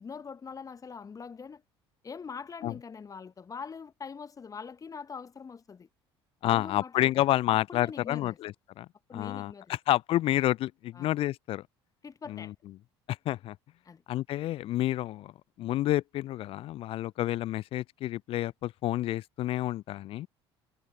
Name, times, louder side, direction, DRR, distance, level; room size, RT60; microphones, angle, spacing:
voice 1, 0.0-1.6 2.0-5.9 6.4-7.2 7.5-8.4 9.1-9.8 10.9-11.2 12.0-12.5 13.8-14.0, left 6 dB, 25° left, 1.1 m, -43 dB
voice 2, 6.4-9.5 9.9-11.6 12.3-12.5 13.3-13.6 14.1-15.3 15.6-20.3, left 14 dB, 40° left, 0.5 m, -29 dB
figure-of-eight pair, 60°, 14 cm